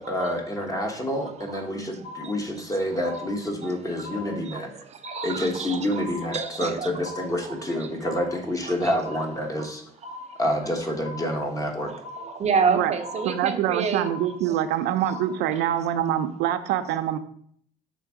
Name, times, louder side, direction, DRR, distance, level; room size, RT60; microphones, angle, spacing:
voice 1, 0.0-4.7 5.2-9.8 10.4-11.9, left 1 dB, 20° left, 2 dB, 1.2 m, -28 dB
sound 1, 1.4-1.7 2.0-2.7 3.0-3.7 4.0-4.7 5.0-5.7 6.0-6.7 7.0-7.7 8.0-8.7 9.0-9.7 10.0-10.7 11.0-11.7 12.0-12.7 13.0-13.7 14.0-14.7 15.0-15.7, left 3 dB, 75° left, 2.3 m, -42 dB
voice 2, 1.9-2.3 3.0-3.2 3.6-7.1 7.4-7.9 8.6-9.1 9.5-9.7 10.1-10.4 11.9-14.1 15.5-15.6, right 5 dB, 40° right, 7 dB, 0.6 m, -30 dB
voice 3, 13.2-17.2, right 11 dB, 90° right, 8 dB, 0.5 m, -25 dB
5.7 x 3.6 x 4.8 m, 0.64 s
cardioid pair, 110°, 17 cm